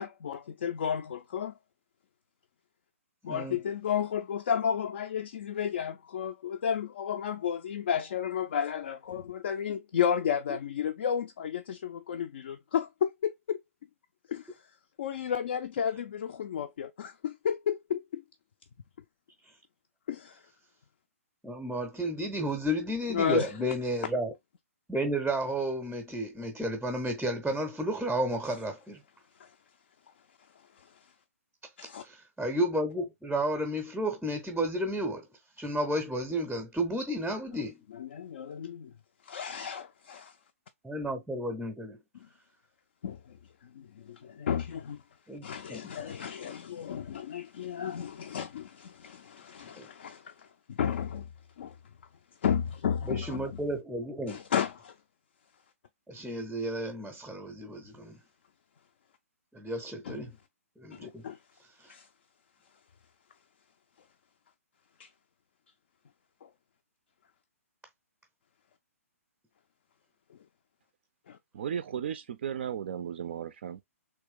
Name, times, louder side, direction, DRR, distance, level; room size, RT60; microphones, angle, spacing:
voice 1, 0.0-1.5 3.2-13.6 14.3-14.5 15.0-18.2 20.1-20.4 23.1-23.7 29.4-29.5 30.8-30.9 31.8-32.0 37.9-38.9 39.2-40.3 43.0-43.4 43.6-45.0 45.4-51.3 51.6-51.8 52.4-53.6 54.3-54.9 60.0-60.2 60.9-61.4 61.9-62.1 65.0-65.1 66.4-66.5 71.3-71.4, left 8 dB, 45° left, 0.4 m, -33 dB
voice 2, 3.2-3.6 21.4-24.3 24.9-29.0 32.0-35.2 35.6-37.8 40.8-42.0 45.3-45.8 49.8-49.9 53.1-54.4 56.1-58.2 59.5-60.3 60.8-61.2, right 1 dB, 5° right, 0.6 m, -32 dB
voice 3, 71.5-73.7, right 8 dB, 45° right, 0.4 m, -35 dB
3.1 x 2.9 x 3.4 m
figure-of-eight pair, 125°, 8 cm